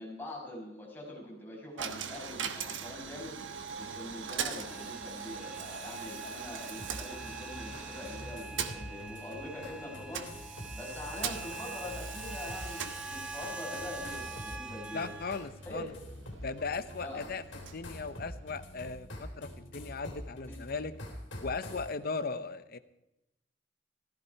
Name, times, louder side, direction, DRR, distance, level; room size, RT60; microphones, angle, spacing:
voice 1, 0.0-3.4 3.8-15.1 15.7-15.9 17.0-17.3 20.5-20.6, left 1 dB, 10° left, -4 dB, 5.8 m, -44 dB
Coin (dropping), 1.8-18.7, right 7 dB, 75° right, 1.2 m, -42 dB
sound 1, 4.6-15.4, right 2 dB, 5° right, 0.8 m, -45 dB
sound 2, 6.8-21.9, left 1 dB, 70° left, 3.2 m, -46 dB
voice 2, 14.9-15.9 16.4-20.9 21.4-22.8, left 4 dB, 50° left, 12 dB, 0.8 m, -37 dB
15.0 x 14.0 x 4.6 m, 0.93 s
head